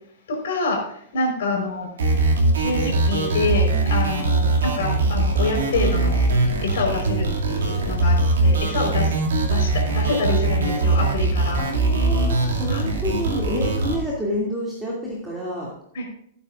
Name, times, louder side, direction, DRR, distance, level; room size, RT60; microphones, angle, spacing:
voice 1, 0.3-0.8 1.1-1.9 2.6-6.2 6.6-9.1 9.5-11.6 12.7-12.9 13.5-13.7 15.9-16.1, left 3 dB, 60° left, 1 dB, 4.3 m, -26 dB
sound 1, 2.0-14.0, right 2 dB, 65° right, 2.4 m, -21 dB
voice 2, 11.6-15.7, equal, 5° right, -5 dB, 2.6 m, -28 dB
17.0 x 9.1 x 2.5 m, 0.68 s
figure-of-eight pair, 100°, 0 cm